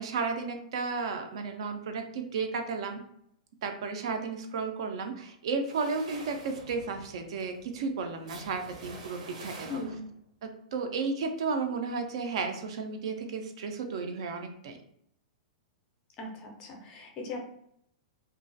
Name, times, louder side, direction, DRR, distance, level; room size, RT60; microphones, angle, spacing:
voice 1, 0.0-3.0 3.6-9.8 10.4-14.8, right 4 dB, 50° right, 5 dB, 0.3 m, -33 dB
sound 1, 5.6-10.2, right 3 dB, 75° right, 0.7 m, -47 dB
voice 2, 9.7-10.1 16.2-17.5, left 3 dB, 20° left, 1 dB, 0.4 m, -39 dB
2.4 x 2.2 x 2.4 m, 0.71 s
supercardioid pair, 175°, 4 cm